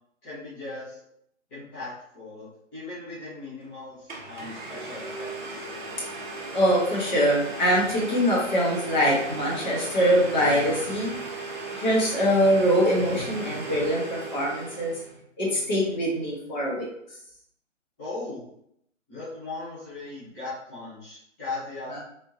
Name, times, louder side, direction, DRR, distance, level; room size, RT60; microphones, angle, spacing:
voice 1, 0.2-1.0 1.5-5.7 18.0-18.4 19.1-22.0, left 3 dB, 10° left, -13 dB, 0.7 m, -38 dB
Domestic sounds home sounds, 3.6-3.7 4.1-15.1, right 2 dB, 40° right, 0.8 m, -37 dB
voice 2, 6.5-11.2 11.7-14.9 15.4-16.9 21.9-22.0, equal, 35° left, -4 dB, 1.1 m, -23 dB
3.5 x 2.7 x 2.6 m, 0.72 s
figure-of-eight pair, 135°, 39 cm